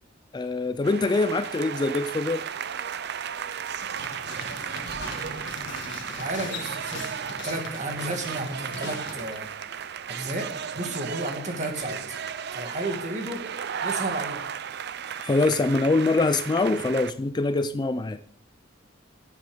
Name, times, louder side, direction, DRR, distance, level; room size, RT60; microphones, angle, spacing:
voice 1, 0.3-2.5 15.2-18.2, left 3 dB, 25° left, 0.4 m, -24 dB
sound 1, 0.8-17.1, right 8 dB, 60° right, 0.5 m, -35 dB
sound 2, 1.8-6.6, right 2 dB, 80° right, 4.1 m, -51 dB
sound 3, 3.9-9.4, left 4 dB, 65° left, 1.7 m, -40 dB
voice 2, 6.2-7.1 7.4-9.5 10.1-12.0 12.5-13.4 13.8-14.5, right 1 dB, 40° right, 2.2 m, -32 dB
12.5 x 8.2 x 5.0 m
head